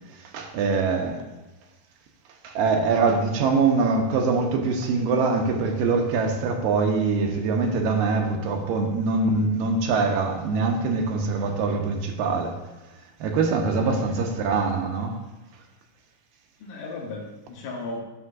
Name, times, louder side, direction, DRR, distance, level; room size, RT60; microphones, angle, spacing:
voice 1, 0.1-1.3 2.4-12.7 13.2-15.2, right 4 dB, 80° right, 3 dB, 2.3 m, -23 dB
voice 2, 13.6-14.0 16.6-18.0, left 3 dB, 70° left, 0 dB, 2.2 m, -36 dB
9.7 x 6.4 x 2.5 m, 1.1 s
omnidirectional pair, 4.1 m